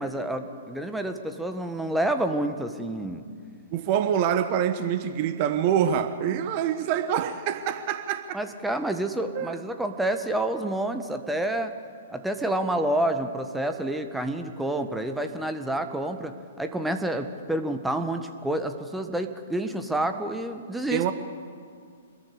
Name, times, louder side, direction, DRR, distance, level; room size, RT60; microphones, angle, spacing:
voice 1, 0.0-3.2 8.3-11.7 12.1-21.1, right 1 dB, 5° right, 1.6 m, -28 dB
voice 2, 3.7-8.3 9.3-9.6 20.9-21.1, right 9 dB, 35° right, 1.3 m, -25 dB
26.0 x 21.0 x 8.3 m
figure-of-eight pair, 115°, 0 cm